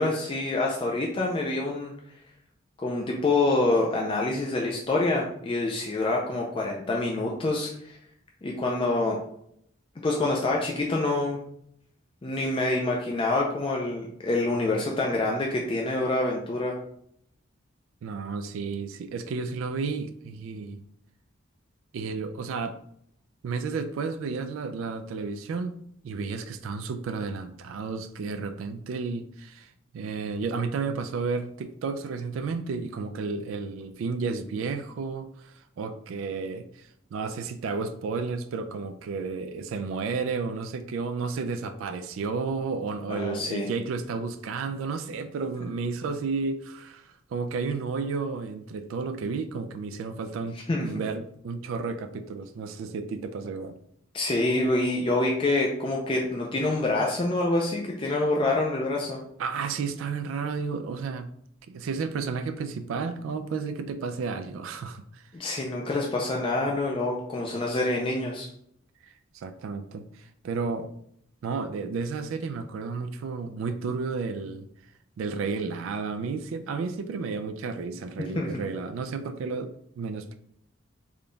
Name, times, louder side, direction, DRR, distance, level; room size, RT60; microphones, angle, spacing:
voice 1, 0.0-1.9 2.8-8.0 8.4-9.2 10.0-11.4 12.2-16.8 43.1-43.7 50.7-50.8 54.1-59.2 65.4-68.5 78.4-78.6, left 2 dB, 25° left, -1 dB, 0.4 m, -26 dB
voice 2, 18.0-20.8 21.9-22.8 23.4-25.8 26.0-53.8 58.1-58.2 59.4-61.3 61.7-65.2 69.0-70.9 71.4-74.7 75.2-80.3, right 4 dB, 75° right, 9 dB, 0.3 m, -32 dB
3.6 x 2.2 x 3.8 m, 0.70 s
head